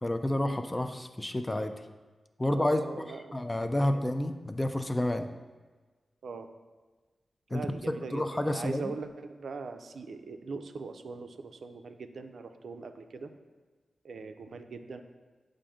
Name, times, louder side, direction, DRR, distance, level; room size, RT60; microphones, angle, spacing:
voice 1, 0.0-1.7 2.4-2.8 3.3-5.3 7.5-7.7 8.1-8.9, left 1 dB, 20° left, 7 dB, 0.4 m, -29 dB
voice 2, 2.5-4.0 6.2-6.5 7.5-13.3 14.0-15.0, right 4 dB, 80° right, 7 dB, 0.4 m, -41 dB
7.5 x 2.6 x 4.9 m, 1.3 s
wide cardioid pair, 85°, 0 cm